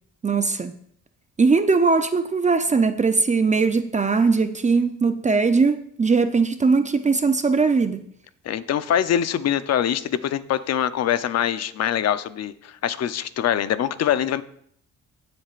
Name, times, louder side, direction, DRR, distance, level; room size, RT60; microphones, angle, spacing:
voice 1, 0.2-0.8 1.4-8.1, right 4 dB, 25° right, 0.6 m, -20 dB
voice 2, 8.4-14.4, left 10 dB, 55° left, 0.7 m, -24 dB
19.0 x 7.8 x 2.5 m
cardioid pair, 90°, 30 cm